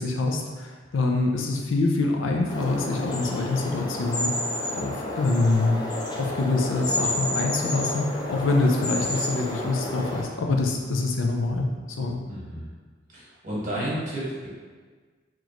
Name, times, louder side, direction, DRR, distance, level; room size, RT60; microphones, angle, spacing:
voice 1, 0.0-4.3 4.7-5.8 6.2-11.7 12.0-12.2, left 3 dB, 80° left, 2 dB, 0.5 m, -25 dB
sound 1, 2.5-10.2, left 1 dB, 20° left, 0.5 m, -30 dB
voice 2, 12.3-12.7 13.1-14.5, right 1 dB, 40° right, -8 dB, 1.5 m, -31 dB
3.9 x 3.1 x 3.1 m, 1.5 s
head